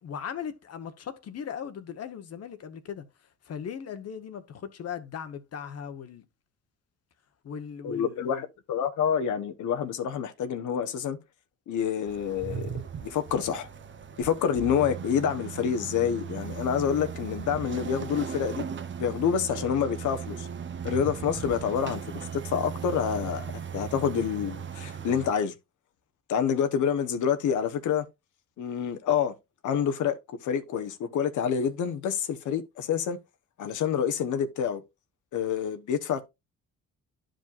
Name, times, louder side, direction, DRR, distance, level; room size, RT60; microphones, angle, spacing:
voice 1, 0.0-3.1 3.4-6.2 7.4-8.5, left 8 dB, 55° left, 1.1 m, -38 dB
voice 2, 7.8-11.2 11.7-12.7 13.0-13.7 14.2-18.6 19.0-20.5 20.8-25.5 26.3-28.0 28.6-29.3 29.6-30.2 30.4-33.2 33.6-34.8 35.3-36.2, left 8 dB, 75° left, 1.1 m, -27 dB
sound 1, 12.1-25.3, right 7 dB, 40° right, 0.9 m, -37 dB
11.5 x 5.1 x 2.5 m
cardioid pair, 90°, 30 cm